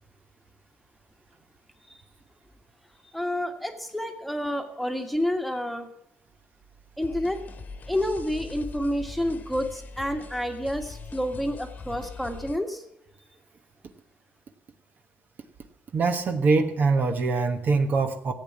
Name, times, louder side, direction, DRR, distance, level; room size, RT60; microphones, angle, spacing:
voice 1, 3.1-5.9 7.0-7.4 7.9-12.8, equal, ahead, 5 dB, 1.6 m, -29 dB
sound 1, 7.0-12.6, left 4 dB, 40° left, 1.4 m, -41 dB
voice 2, 15.9-18.3, right 4 dB, 40° right, 6 dB, 1.2 m, -23 dB
15.0 x 8.6 x 8.6 m, 0.80 s
cardioid pair, 125°, 5 cm